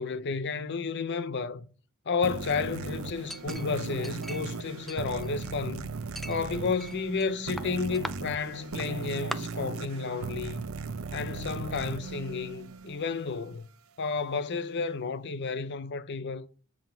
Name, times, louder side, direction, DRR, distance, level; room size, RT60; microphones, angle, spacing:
voice 1, 0.0-1.7 2.1-5.9 6.3-10.7 11.1-13.7 14.0-16.5, left 5 dB, 55° left, 0.6 m, -32 dB
sound 1, 2.2-13.4, right 4 dB, 70° right, 0.7 m, -37 dB
Chink clink, 3.3-4.6 4.9-5.7 6.2-7.3 7.6-8.1 8.8-8.9 9.3-9.4, equal, ahead, 0.4 m, -40 dB
7.5 x 5.7 x 4.3 m
head